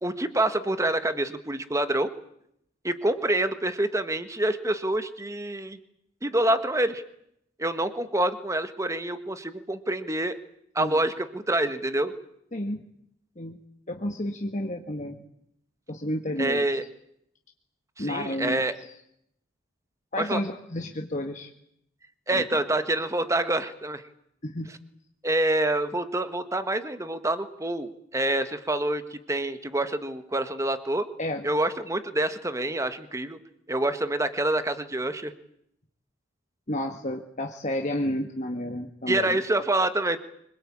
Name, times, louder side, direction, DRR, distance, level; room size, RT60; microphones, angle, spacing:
voice 1, 0.0-2.1 2.8-5.8 6.2-7.0 7.6-10.4 10.7-12.1 16.4-16.8 18.0-18.7 20.2-20.4 22.3-24.0 25.2-31.1 31.4-33.4 33.7-35.3 39.1-40.2, right 1 dB, 15° right, 10 dB, 1.6 m, -27 dB
voice 2, 13.9-15.2 15.9-16.7 18.0-18.6 20.1-21.5 22.3-22.6 24.4-24.7 31.2-31.4 36.7-39.4, left 1 dB, 35° left, 3 dB, 1.7 m, -31 dB
25.5 x 22.5 x 8.8 m, 0.74 s
head